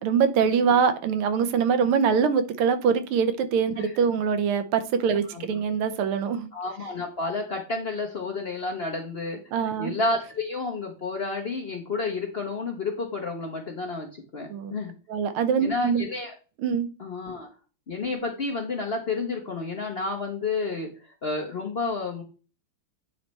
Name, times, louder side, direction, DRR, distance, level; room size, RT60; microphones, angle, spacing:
voice 1, 0.0-6.5 9.5-10.0 14.5-14.7 15.1-16.0 16.6-16.9, right 6 dB, 90° right, 1.7 m, -23 dB
voice 2, 6.5-9.4 9.8-14.9 15.6-16.3 17.0-17.5 17.9-20.9 21.2-22.2, left 3 dB, 55° left, 0.6 m, -30 dB
8.5 x 3.3 x 4.1 m
omnidirectional pair, 2.3 m